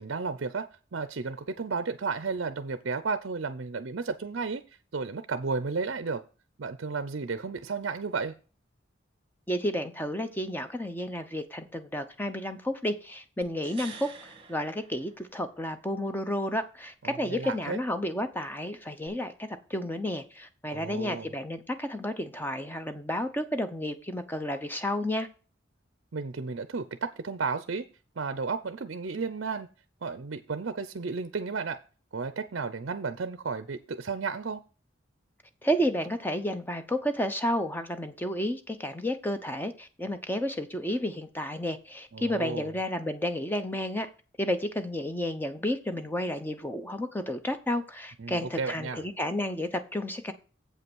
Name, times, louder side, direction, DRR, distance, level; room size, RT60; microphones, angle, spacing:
voice 1, 0.0-6.2 6.6-8.3 17.0-17.8 20.7-21.3 26.1-27.9 28.2-29.7 30.0-31.8 32.1-34.6 42.1-42.7 48.2-49.1, right 4 dB, 60° right, 12 dB, 0.5 m, -33 dB
voice 2, 9.5-25.3 35.6-44.1 44.4-50.3, equal, 10° left, 8 dB, 0.7 m, -31 dB
sound 1, 13.4-15.7 19.1-19.2, right 5 dB, 30° right, 1.7 m, -47 dB
7.8 x 5.6 x 6.1 m, 0.36 s
head